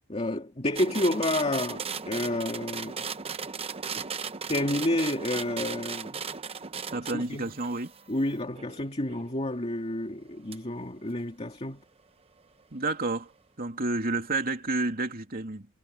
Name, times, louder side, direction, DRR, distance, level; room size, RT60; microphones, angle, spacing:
voice 1, 0.0-3.1 4.0-4.1 4.5-6.2 7.1-7.4 8.1-11.8, left 1 dB, 30° left, 2.3 m, -30 dB
sound 1, 0.8-9.3 10.5-10.6, right 6 dB, 25° right, 0.9 m, -37 dB
voice 2, 6.9-7.9 12.7-13.3 13.6-15.7, right 2 dB, 45° right, 3.1 m, -30 dB
head